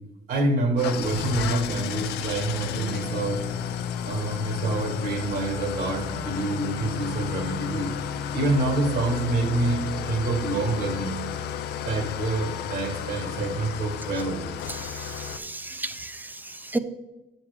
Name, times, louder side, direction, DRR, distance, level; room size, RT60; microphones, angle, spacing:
voice 1, 0.3-3.4 4.0-7.9 8.3-11.2 11.8-14.4, right 2 dB, 65° right, 5 dB, 1.7 m, -26 dB
Engine starting / Idling, 0.8-15.4, left 8 dB, 75° left, 0.5 m, -32 dB
voice 2, 14.8-16.8, right 2 dB, 10° right, 10 dB, 0.5 m, -33 dB
7.2 x 7.1 x 3.4 m, 1.0 s
cardioid pair, 110°, 17 cm